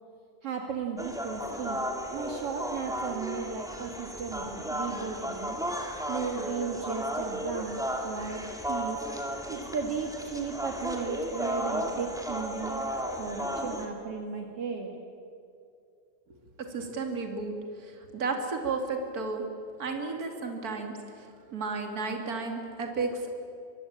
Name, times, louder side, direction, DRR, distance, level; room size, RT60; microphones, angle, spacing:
voice 1, 0.4-1.8 2.1-5.6 6.1-8.4 8.7-9.0 9.5-12.9 13.2-14.9, right 5 dB, 55° right, 2 dB, 2.6 m, -35 dB
sound 1, 1.0-13.9, equal, ahead, 2.1 m, -34 dB
voice 2, 16.7-17.5 17.8-19.5 19.8-23.3, right 4 dB, 30° right, 4 dB, 2.9 m, -33 dB
24.0 x 23.0 x 8.8 m, 2.5 s
omnidirectional pair, 3.4 m